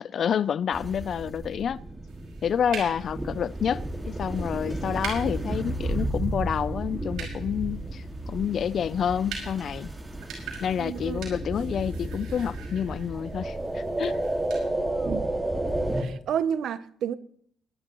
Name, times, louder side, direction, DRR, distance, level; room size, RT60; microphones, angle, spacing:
voice 1, 0.0-1.8 2.4-9.9 10.6-14.2, left 8 dB, 60° left, 0.5 m, -28 dB
sound 1, 0.7-16.0, right 1 dB, 15° right, 2.1 m, -32 dB
sound 2, 2.1-14.6, right 5 dB, 90° right, 5.6 m, -44 dB
voice 2, 10.8-11.2 14.9-15.3 16.0-17.2, right 8 dB, 70° right, 0.8 m, -30 dB
24.0 x 11.5 x 3.1 m
cardioid pair, 90°, 0 cm